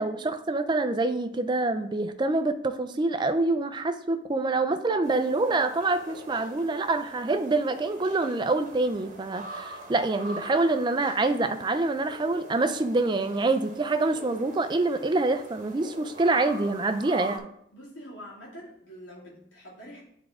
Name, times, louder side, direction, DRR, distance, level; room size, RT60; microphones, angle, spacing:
voice 1, 0.0-17.5, right 2 dB, 25° right, 9 dB, 0.3 m, -26 dB
sound 1, 5.0-17.4, right 1 dB, 40° right, 1.0 m, -44 dB
voice 2, 17.7-20.0, equal, 70° left, -5 dB, 2.5 m, -45 dB
9.5 x 3.6 x 3.6 m, 0.73 s
head